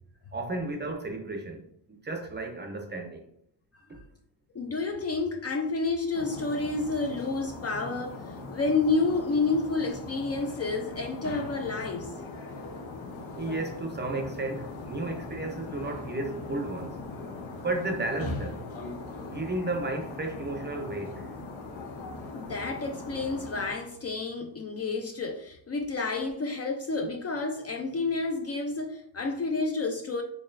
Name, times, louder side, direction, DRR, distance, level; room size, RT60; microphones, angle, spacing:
voice 1, 0.3-3.3 13.4-17.0 17.6-18.6 19.2-21.3, right 2 dB, 25° right, 0.5 m, -33 dB
voice 2, 4.5-8.2 8.5-12.1 22.3-30.2, left 3 dB, 35° left, 0.4 m, -30 dB
sound 1, 6.1-23.7, left 3 dB, 80° left, 0.8 m, -40 dB
4.3 x 3.0 x 2.5 m
cardioid pair, 105°, 46 cm